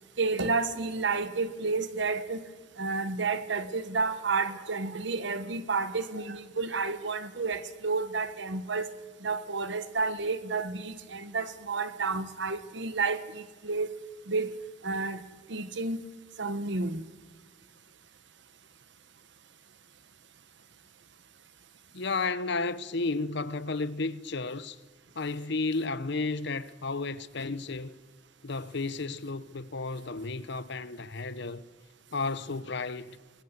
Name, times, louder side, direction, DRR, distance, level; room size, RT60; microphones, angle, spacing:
voice 1, 0.2-2.4 2.8-8.9 9.2-13.9 14.3-14.6 14.8-15.2 15.5-16.0 16.4-17.0, right 4 dB, 70° right, 1.3 m, -31 dB
voice 2, 21.9-24.8 25.1-28.0 28.4-31.6 32.1-33.2, left 3 dB, 65° left, 1.0 m, -32 dB
25.5 x 21.5 x 8.2 m
head